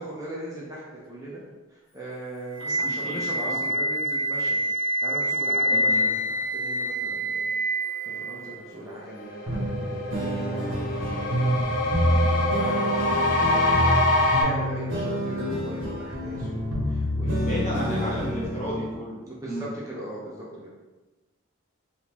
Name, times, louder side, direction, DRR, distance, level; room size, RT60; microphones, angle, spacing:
voice 1, 0.0-1.4 1.7-4.5 5.0-7.6 8.1-10.6 11.0-13.8 14.2-18.3 19.2-20.7, right 1 dB, 15° right, -6 dB, 0.5 m, -39 dB
Wind instrument woodwind instrument, 2.6-8.6, equal, 90° left, 1.0 m, -26 dB
voice 2, 2.7-3.6 5.7-6.0 12.1-12.3 17.4-19.7, equal, 35° left, -5 dB, 0.8 m, -34 dB
sound 1, 8.7-8.8 9.1-14.4, left 2 dB, 65° left, 0.6 m, -25 dB
sound 2, 9.5-18.9, equal, 65° right, 0.8 m, -27 dB
3.5 x 2.4 x 2.9 m, 1.2 s
head